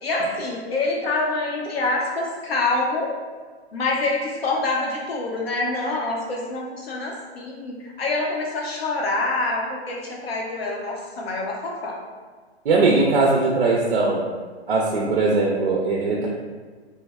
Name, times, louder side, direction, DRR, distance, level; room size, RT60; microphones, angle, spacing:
voice 1, 0.0-3.1 3.7-12.0, left 2 dB, 65° left, -1 dB, 0.7 m, -26 dB
voice 2, 12.6-14.2 14.7-16.3, right 3 dB, 55° right, -3 dB, 0.5 m, -20 dB
3.3 x 2.1 x 3.4 m, 1.5 s
hypercardioid pair, 160°, 33 cm